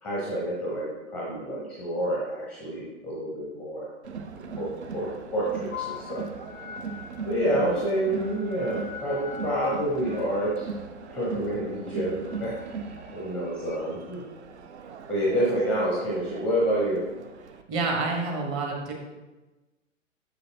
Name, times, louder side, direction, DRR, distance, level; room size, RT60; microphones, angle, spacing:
voice 1, 0.0-3.9 4.6-6.3 7.2-10.7 11.1-12.5 13.1-14.2 15.1-17.0, right 1 dB, 5° left, -5 dB, 0.6 m, -28 dB
Crowd, 4.0-17.6, right 5 dB, 60° right, 0.6 m, -39 dB
sound 1, 5.7-13.8, left 7 dB, 90° left, 0.7 m, -44 dB
voice 2, 17.7-18.9, right 3 dB, 30° right, 0 dB, 1.2 m, -28 dB
6.5 x 6.4 x 2.7 m, 1.1 s
figure-of-eight pair, 120°, 39 cm